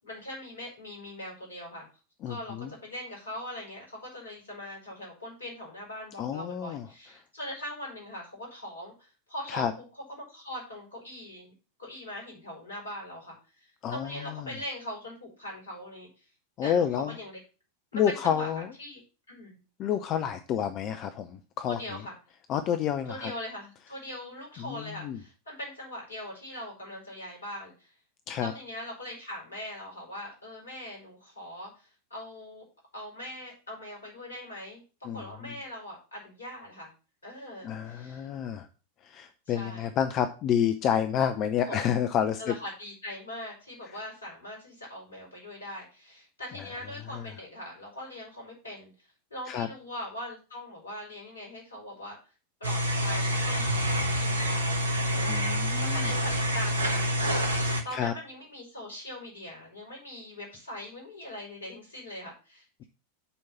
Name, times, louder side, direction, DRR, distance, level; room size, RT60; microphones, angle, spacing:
voice 1, 0.0-1.9 2.3-9.7 10.1-11.5 11.8-16.1 16.6-17.4 17.9-19.0 19.3-19.6 21.6-22.1 23.1-27.9 28.4-32.6 32.9-34.8 35.1-36.9 37.2-38.3 39.5-39.9 41.6-41.9 42.4-48.9 49.3-52.2 52.6-54.8 55.1-55.5 55.8-57.5 57.8-62.9, left 1 dB, 70° left, -1 dB, 4.5 m, -41 dB
voice 2, 2.2-2.7 6.2-6.8 9.5-9.7 13.8-14.5 16.6-17.1 17.9-18.7 19.8-22.0 22.5-23.3 24.6-25.2 28.3-28.5 35.0-35.5 37.6-38.7 39.0-42.5 47.1-47.2 49.5-49.7 55.3-56.1 57.9-58.1, left 9 dB, 35° left, 9 dB, 0.6 m, -29 dB
sound 1, 52.6-57.8, equal, 75° right, 1.2 m, -27 dB
7.0 x 4.7 x 6.9 m, 0.35 s
figure-of-eight pair, 90°, 0 cm